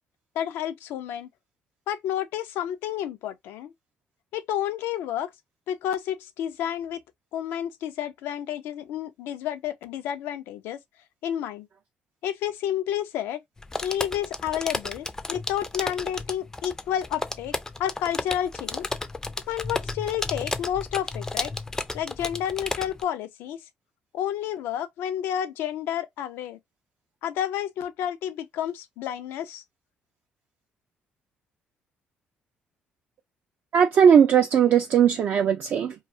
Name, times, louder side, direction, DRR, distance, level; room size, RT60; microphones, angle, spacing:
voice 1, 0.4-1.3 1.9-3.7 4.3-5.3 5.7-7.0 7.3-10.8 11.2-11.7 12.2-13.4 13.8-18.9 19.5-21.5 21.9-23.6 24.1-26.6 27.2-29.6, left 10 dB, 85° left, 0.4 m, -30 dB
sound 1, 13.6-23.0, left 2 dB, 15° left, 0.4 m, -33 dB
voice 2, 33.7-35.9, right 8 dB, 55° right, 0.4 m, -18 dB
2.3 x 2.3 x 2.5 m
cardioid pair, 95°, 4 cm